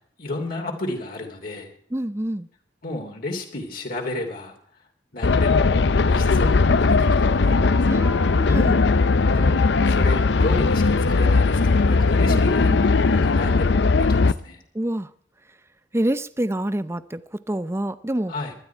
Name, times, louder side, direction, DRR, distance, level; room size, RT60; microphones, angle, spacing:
voice 1, 0.2-1.7 2.8-4.5 5.1-7.8 9.3-14.6 18.3-18.5, left 2 dB, 55° left, 2.8 m, -32 dB
voice 2, 1.9-2.5 7.9-8.8 12.3-12.4 12.7-12.8 14.7-15.1 15.9-18.3, right 1 dB, 15° right, 0.6 m, -27 dB
sound 1, 5.2-14.3, left 4 dB, 70° left, 0.6 m, -18 dB
20.0 x 12.0 x 4.6 m
head